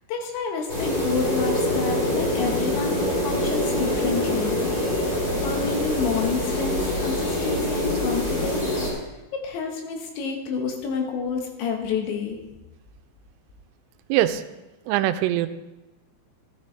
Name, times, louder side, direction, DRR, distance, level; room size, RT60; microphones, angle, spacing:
voice 1, 0.1-4.6 5.4-8.7 9.3-12.4, left 5 dB, 75° left, 3 dB, 3.5 m, -29 dB
sound 1, 0.7-8.9, left 1 dB, 30° left, 3.6 m, -25 dB
voice 2, 14.1-14.4 14.9-15.5, right 13 dB, 90° right, 10 dB, 3.1 m, -22 dB
13.5 x 9.8 x 3.3 m, 1.0 s
omnidirectional pair, 5.5 m